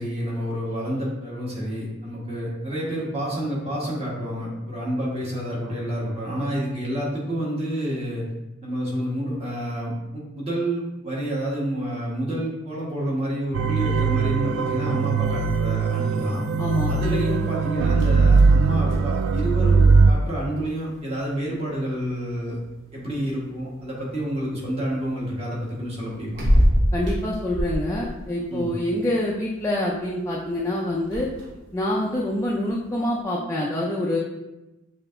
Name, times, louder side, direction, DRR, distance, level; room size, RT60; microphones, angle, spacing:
voice 1, 0.0-8.3 8.6-16.4 16.9-22.6 22.9-26.4 28.5-28.7, right 1 dB, 30° right, -5 dB, 1.3 m, -29 dB
sound 1, 13.5-20.1, right 4 dB, 90° right, 0.3 m, -20 dB
sound 2, 16.5-33.2, equal, 60° right, 0.8 m, -30 dB
voice 2, 16.6-16.9 26.9-31.3 31.7-34.2, left 1 dB, 15° left, -5 dB, 0.4 m, -26 dB
6.7 x 2.8 x 2.5 m, 0.99 s
head